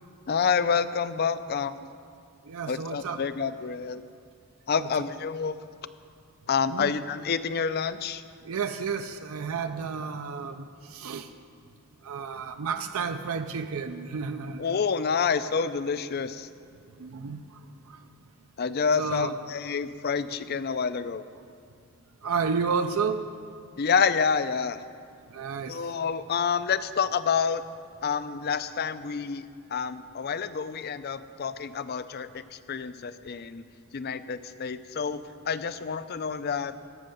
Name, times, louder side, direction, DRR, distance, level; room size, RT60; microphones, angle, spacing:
voice 1, 0.3-1.9 2.7-4.0 4.7-5.6 6.5-8.2 14.6-16.5 18.6-21.2 23.8-24.8 25.7-27.6 28.0-29.4 29.7-33.6 33.9-36.7, left 6 dB, 45° left, 14 dB, 0.4 m, -28 dB
voice 2, 2.5-3.2 6.7-6.9 8.4-11.3 12.0-14.8 17.0-17.6 17.9-18.0 19.0-19.3 22.2-23.2 25.3-25.9, right 5 dB, 70° right, 8 dB, 0.5 m, -31 dB
14.0 x 6.4 x 9.1 m, 2.4 s
head